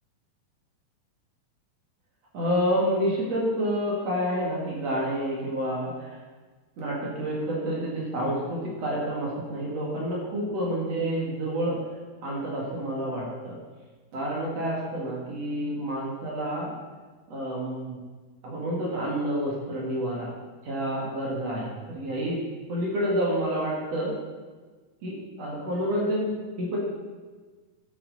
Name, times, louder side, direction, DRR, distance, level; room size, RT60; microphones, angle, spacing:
voice 1, 2.3-6.2 6.8-11.8 12.2-13.6 14.1-16.7 17.3-18.0 18.4-20.3 20.6-22.4 22.7-24.1 25.0-26.3 26.6-26.8, equal, 50° right, -4 dB, 2.5 m, -29 dB
11.5 x 7.6 x 4.0 m, 1.4 s
omnidirectional pair, 4.4 m